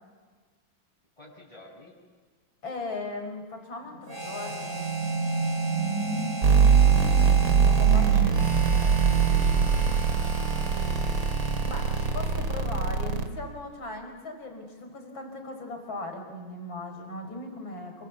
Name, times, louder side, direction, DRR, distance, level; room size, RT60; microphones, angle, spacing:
voice 1, 1.2-1.9 7.8-10.7, left 1 dB, 15° left, -6 dB, 6.2 m, -49 dB
voice 2, 2.6-5.0 7.6-8.2 11.6-18.1, left 2 dB, 70° left, 4 dB, 5.9 m, -38 dB
sound 1, 3.9-10.5, right 4 dB, 40° left, 3.8 m, -31 dB
Harmonica, 4.1-12.7, right 2 dB, 10° right, 3.0 m, -38 dB
sound 2, 6.4-13.3, right 6 dB, 75° right, 2.9 m, -22 dB
28.5 x 24.0 x 8.4 m, 1.5 s
omnidirectional pair, 2.2 m